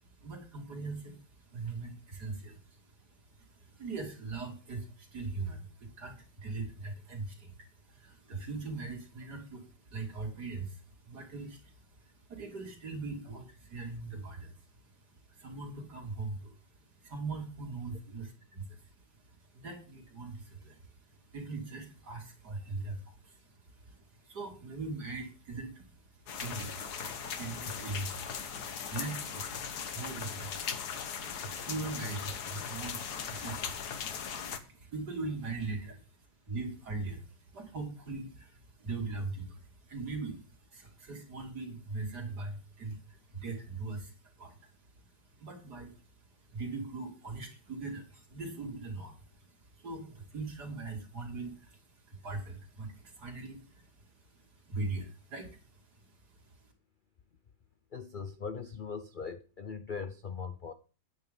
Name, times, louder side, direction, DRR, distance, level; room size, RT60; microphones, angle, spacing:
voice 1, 0.0-14.6 15.3-36.1 36.4-44.7 45.0-56.1 56.4-56.6, right 3 dB, 65° right, 3.3 m, -41 dB
sound 1, 26.3-34.6, left 7 dB, 65° left, 1.7 m, -39 dB
voice 2, 57.9-60.7, left 5 dB, 50° left, 0.6 m, -40 dB
9.4 x 9.4 x 5.3 m
omnidirectional pair, 1.9 m